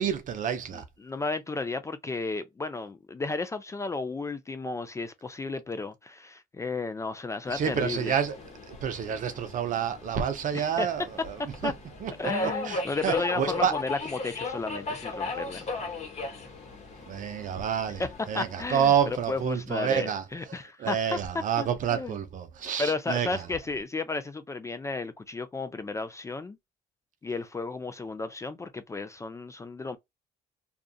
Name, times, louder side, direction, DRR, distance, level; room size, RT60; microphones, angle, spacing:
voice 1, 0.0-0.8 7.5-8.3 8.7-11.7 12.0-13.8 17.1-23.5, right 8 dB, 50° right, 0.6 m, -29 dB
voice 2, 0.7-8.2 10.5-10.9 11.6-11.7 12.2-15.6 18.0-18.1 18.3-21.2 21.6-22.1 22.8-26.6 27.2-30.0, left 3 dB, 15° left, 0.4 m, -33 dB
Subway metro underground, 7.5-19.5, left 3 dB, 40° left, 1.1 m, -37 dB
2.5 x 2.4 x 2.4 m
cardioid pair, 110°, 17 cm